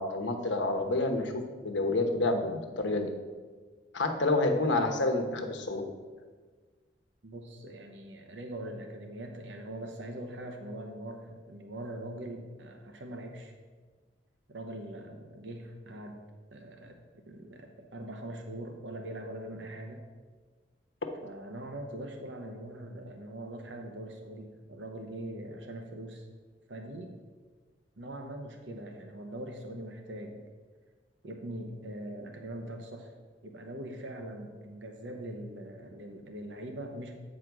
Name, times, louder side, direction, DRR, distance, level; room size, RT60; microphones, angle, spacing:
voice 1, 0.0-3.1 3.9-5.9, left 2 dB, 90° left, 4 dB, 1.0 m, -29 dB
voice 2, 7.2-13.5 14.5-16.2 16.5-17.0 17.3-20.0 21.2-26.3 26.7-27.1 28.0-30.4 31.2-33.1 33.4-37.1, right 1 dB, 80° right, 4 dB, 0.9 m, -42 dB
8.2 x 4.3 x 6.1 m, 1.4 s
head